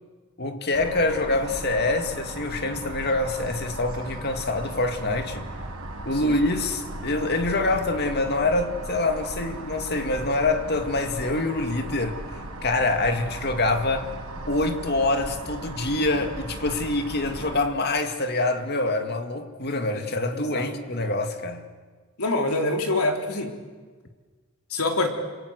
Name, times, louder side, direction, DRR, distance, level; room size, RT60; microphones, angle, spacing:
voice 1, 0.4-5.5 6.1-12.2 12.6-14.1 14.5-21.7, left 2 dB, 50° left, 2.3 m, -25 dB
sound 1, 0.7-17.6, right 1 dB, 85° right, 6.1 m, -37 dB
voice 2, 22.2-23.5 24.7-25.1, left 2 dB, 85° left, 3.8 m, -25 dB
27.5 x 26.5 x 8.2 m
head